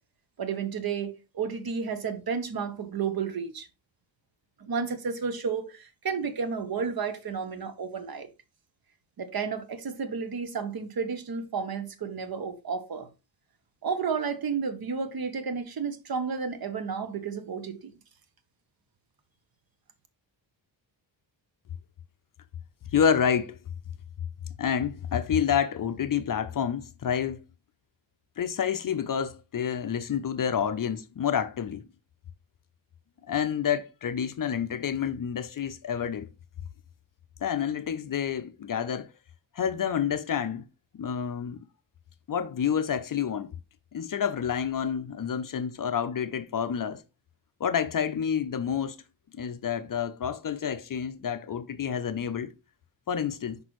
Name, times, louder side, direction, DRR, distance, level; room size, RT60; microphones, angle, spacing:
voice 1, 0.4-3.7 4.6-8.3 9.2-13.1 13.8-17.9, right 5 dB, 50° right, 0.9 m, -32 dB
voice 2, 22.9-23.6 24.6-27.4 28.4-31.8 33.3-36.3 37.4-39.1 39.5-40.6 40.9-41.6 42.3-43.5 43.9-47.0 47.6-49.0 49.3-52.5 53.1-53.6, left 8 dB, 45° left, 0.5 m, -28 dB
6.0 x 5.2 x 3.0 m
wide cardioid pair, 120°, 47 cm